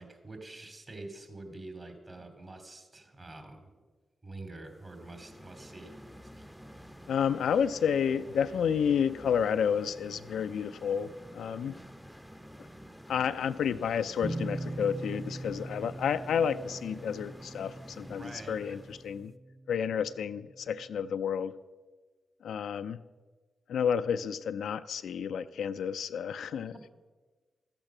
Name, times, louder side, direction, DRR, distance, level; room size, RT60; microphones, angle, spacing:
voice 1, 0.0-3.7 4.2-5.9 6.4-6.5 6.7-6.8 18.1-18.8 26.7-26.9, right 2 dB, 40° right, 6 dB, 2.8 m, -46 dB
sound 1, 4.7-19.3, equal, ahead, 0.8 m, -50 dB
voice 2, 7.1-11.8 13.1-19.3 19.7-21.5 22.4-23.0 23.7-26.9, left 7 dB, 80° left, 11 dB, 0.4 m, -30 dB
sound 2, 14.2-19.8, right 2 dB, 20° right, 1.4 m, -41 dB
13.5 x 8.8 x 6.0 m, 1.4 s
supercardioid pair, 45°, 0 cm